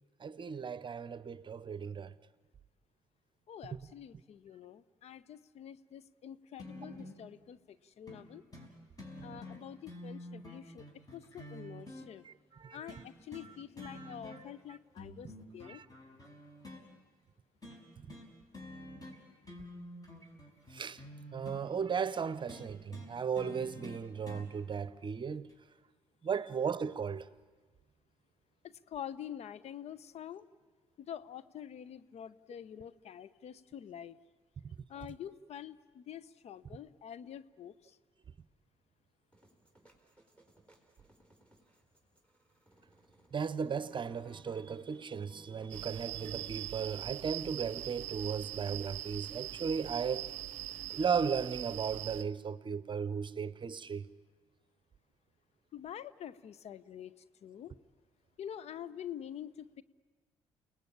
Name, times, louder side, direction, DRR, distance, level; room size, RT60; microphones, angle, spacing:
voice 1, 0.2-2.1 12.2-13.0 13.8-14.1 15.7-15.8 20.7-21.0 21.3-25.5 26.2-27.3 43.3-50.3 50.9-54.0, right 6 dB, 35° right, 0.9 m, -36 dB
voice 2, 3.5-8.4 9.2-10.9 11.1-12.2 12.7-15.8 28.6-30.5 31.0-34.2 34.9-38.0 55.7-57.7 58.4-59.8, left 9 dB, 55° left, 0.8 m, -47 dB
sound 1, 6.6-7.2 8.1-8.2 8.5-8.7 9.0-12.1 12.9-13.5 13.8-14.6 15.0-16.8 17.6-17.8 18.1-18.3 18.5-19.2 19.4-21.6 22.5-24.5 25.5-25.6, left 1 dB, 30° left, 5.7 m, -48 dB
sound 2, 39.3-51.9, right 1 dB, 10° left, 4.2 m, -59 dB
Nieu-Bethesda (Karoo Ambience), 45.7-52.2, right 16 dB, 65° right, 0.7 m, -42 dB
30.0 x 18.5 x 8.6 m
hypercardioid pair, 45°, 13 cm